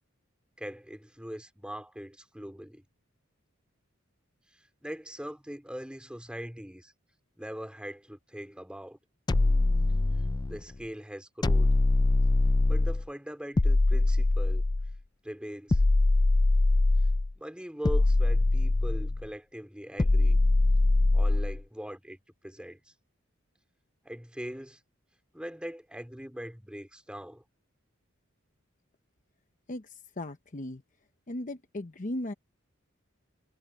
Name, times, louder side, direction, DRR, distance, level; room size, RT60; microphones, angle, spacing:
voice 1, 0.6-2.8 4.5-6.9 7.4-9.0 10.5-11.7 12.7-14.6 15.2-15.8 17.3-20.4 21.1-22.9 24.0-24.8 25.3-27.4, equal, 5° right, 4.3 m, -41 dB
sound 1, 9.3-10.6 11.4-13.1 13.6-15.0 15.7-17.3 17.8-19.2 20.0-21.6, left 2 dB, 20° left, 0.3 m, -23 dB
voice 2, 29.7-30.8 31.3-32.3, left 1 dB, 40° left, 0.9 m, -37 dB
head